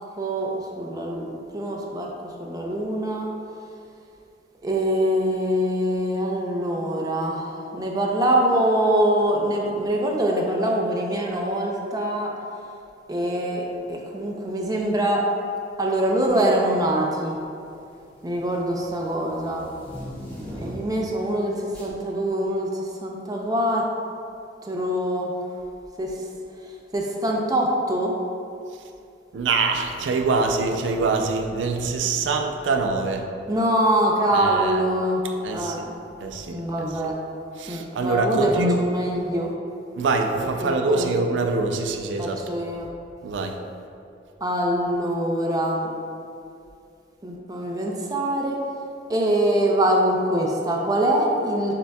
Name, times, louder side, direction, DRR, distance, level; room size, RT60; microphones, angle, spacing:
voice 1, 0.2-2.1 2.4-3.3 4.6-12.3 13.1-15.2 15.8-17.4 18.2-19.6 20.6-23.8 24.6-25.3 26.0-26.2 26.9-28.1 33.5-35.2 35.5-35.8 36.5-37.2 37.7-39.5 40.6-41.2 42.2-42.9 44.4-45.9 47.2-48.6 49.1-51.7, right 1 dB, 20° right, -1 dB, 0.5 m, -24 dB
sound 1, 14.8-15.1 16.0-16.5 16.8-21.1 21.7-22.0, equal, 10° left, 1.1 m, -40 dB
voice 2, 29.3-33.3 34.3-34.8 35.4-35.9 36.2-36.6 36.9-37.1 37.6-38.8 40.0-42.4 43.2-43.6, right 3 dB, 85° right, 4 dB, 0.4 m, -24 dB
6.6 x 3.5 x 2.2 m, 2.5 s
head